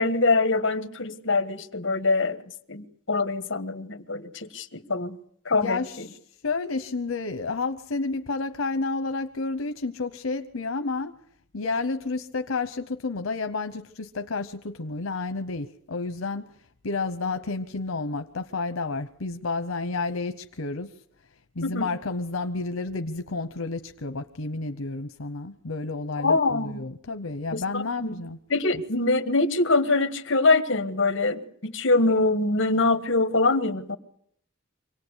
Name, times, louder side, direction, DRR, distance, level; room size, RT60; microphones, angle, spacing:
voice 1, 0.0-2.4 2.7-5.2 5.4-6.1 21.6-21.9 26.2-26.8 27.5-28.2 28.5-34.0, left 3 dB, 65° left, 11 dB, 1.4 m, -24 dB
voice 2, 5.5-6.2 6.4-11.1 11.5-16.5 16.8-20.9 21.6-28.4, left 3 dB, 90° left, 9 dB, 0.9 m, -30 dB
25.0 x 18.0 x 8.1 m, 0.70 s
head